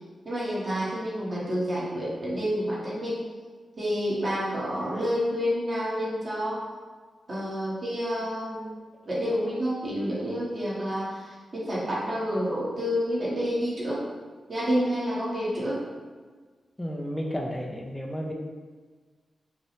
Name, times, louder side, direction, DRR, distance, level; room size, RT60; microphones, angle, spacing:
voice 1, 0.2-3.2 3.8-6.6 7.3-8.8 9.0-14.0 14.5-15.8, equal, 30° right, -8 dB, 1.0 m, -29 dB
voice 2, 16.8-18.3, equal, 10° left, -1 dB, 0.3 m, -32 dB
5.2 x 2.1 x 3.1 m, 1.4 s
wide cardioid pair, 150°, 0 cm